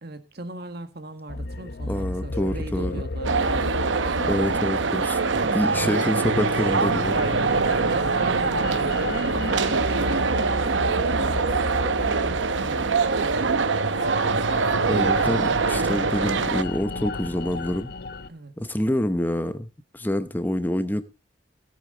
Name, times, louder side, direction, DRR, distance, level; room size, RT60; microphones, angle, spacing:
voice 1, 0.0-3.7 5.7-6.0 7.5-11.8 12.2-13.6 18.3-18.5, right 2 dB, 60° right, 1.7 m, -40 dB
sound 1, 1.3-18.3, left 2 dB, 60° left, 0.8 m, -32 dB
voice 2, 1.9-3.0 4.3-7.2 14.9-17.9 18.6-19.7 19.9-21.0, left 1 dB, 10° left, 0.8 m, -26 dB
sound 2, 3.2-16.6, right 4 dB, 85° right, 0.8 m, -24 dB
16.5 x 8.4 x 3.9 m
head